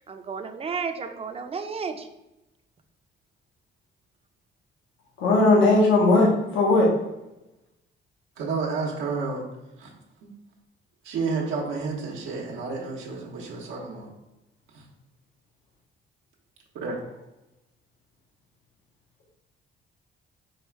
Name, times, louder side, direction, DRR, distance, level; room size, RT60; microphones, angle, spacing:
voice 1, 0.1-2.1, right 5 dB, 30° right, 7 dB, 0.5 m, -32 dB
voice 2, 5.2-6.9, left 2 dB, 80° left, -3 dB, 1.1 m, -18 dB
voice 3, 8.4-9.4 9.8-9.9 10.2-10.3 11.0-14.1 14.7-14.8 16.7-17.0, right 4 dB, 85° right, -2 dB, 0.9 m, -30 dB
4.6 x 2.3 x 4.6 m, 0.93 s
cardioid pair, 90°, 20 cm